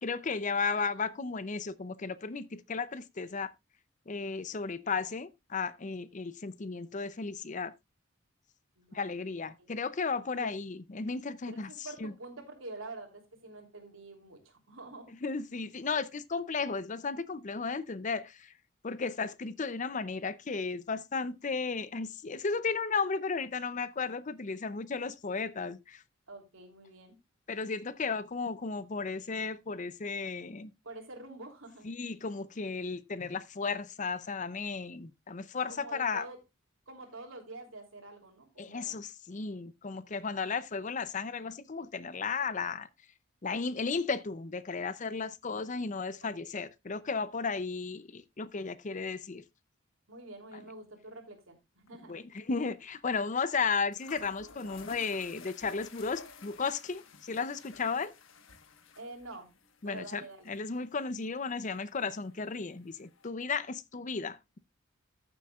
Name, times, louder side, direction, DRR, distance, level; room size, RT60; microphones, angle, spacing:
voice 1, 0.0-3.5 4.1-7.7 8.9-11.7 12.0-12.1 15.2-18.5 18.8-26.0 27.5-30.7 31.8-36.3 38.6-42.9 43.4-49.4 52.1-58.1 59.8-64.6, left 4 dB, 35° left, 0.6 m, -34 dB
voice 2, 8.8-9.2 9.6-9.7 10.3-10.5 11.5-15.1 26.3-27.2 30.8-31.9 35.7-36.4 36.9-39.0 46.2-46.3 50.1-52.2 58.9-59.5 59.8-60.5, right 2 dB, 80° right, 3.1 m, -47 dB
sound 1, 51.9-52.1 52.4-52.5 53.5-53.6 53.9-63.3, left 4 dB, 70° left, 1.2 m, -54 dB
14.0 x 7.8 x 2.4 m
head